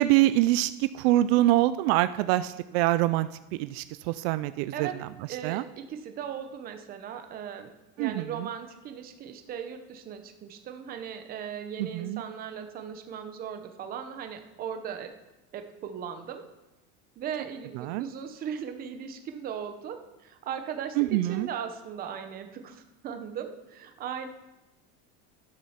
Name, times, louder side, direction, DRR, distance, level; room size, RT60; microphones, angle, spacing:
voice 1, 0.0-5.1 5.4-5.6 8.0-8.5 11.8-12.2 17.7-18.0 21.0-21.5, right 15 dB, 75° right, 13 dB, 0.5 m, -25 dB
voice 2, 5.3-7.7 8.0-15.1 15.5-16.5 17.2-24.3, right 8 dB, 30° right, 7 dB, 0.9 m, -38 dB
12.0 x 7.4 x 5.7 m, 1.0 s
cardioid pair, 180°, 31 cm